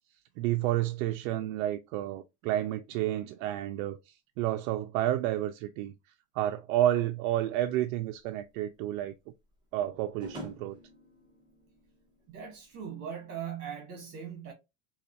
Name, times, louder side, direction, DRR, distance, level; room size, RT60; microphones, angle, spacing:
voice 1, 0.4-5.9 6.3-9.1 9.7-10.8, right 13 dB, 75° right, 0.5 m, -30 dB
sound 1, 8.2-12.9, equal, 10° right, 0.8 m, -49 dB
voice 2, 12.3-14.5, right 8 dB, 45° right, 1.3 m, -40 dB
4.2 x 2.3 x 2.6 m
supercardioid pair, 145°, 40 cm